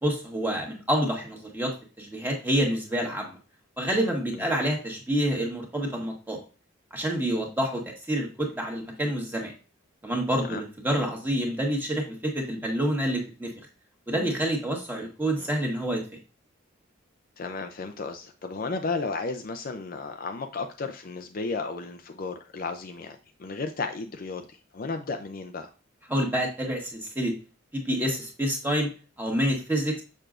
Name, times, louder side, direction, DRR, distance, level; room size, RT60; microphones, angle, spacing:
voice 1, 0.0-3.4 3.8-6.4 6.9-9.5 10.0-13.5 14.1-16.0 26.1-27.3 27.7-28.9 29.2-29.9, equal, 10° right, 0 dB, 1.5 m, -28 dB
voice 2, 17.4-25.7, left 3 dB, 45° left, 6 dB, 0.5 m, -34 dB
6.8 x 6.1 x 2.5 m, 0.35 s
head